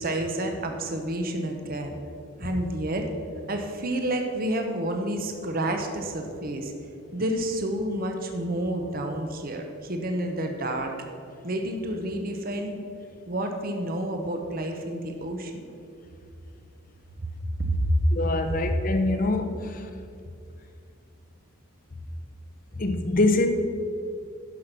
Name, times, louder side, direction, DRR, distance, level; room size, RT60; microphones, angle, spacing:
voice 1, 0.0-1.9 2.4-3.1 3.5-6.7 7.1-10.9 11.4-12.8 13.3-15.6 17.2-17.3 17.6-17.8 18.5-18.7, right 1 dB, 45° right, 4 dB, 1.0 m, -29 dB
voice 2, 18.1-19.9 22.8-23.5, left 2 dB, 40° left, 7 dB, 0.8 m, -24 dB
12.0 x 5.8 x 6.0 m, 2.4 s
head